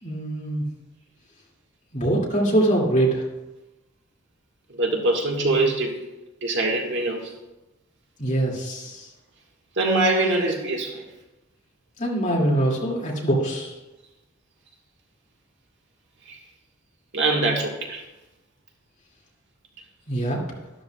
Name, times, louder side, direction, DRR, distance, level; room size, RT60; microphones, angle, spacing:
voice 1, 0.0-0.6 1.9-3.2 8.2-9.1 12.0-13.7 20.1-20.4, right 1 dB, 35° left, -3 dB, 2.3 m, -23 dB
voice 2, 4.7-6.0 6.4-7.3 9.7-11.0 12.2-12.3 16.2-16.4 17.1-18.0, right 2 dB, 55° right, 1 dB, 1.6 m, -23 dB
12.5 x 12.0 x 2.3 m, 1.0 s
head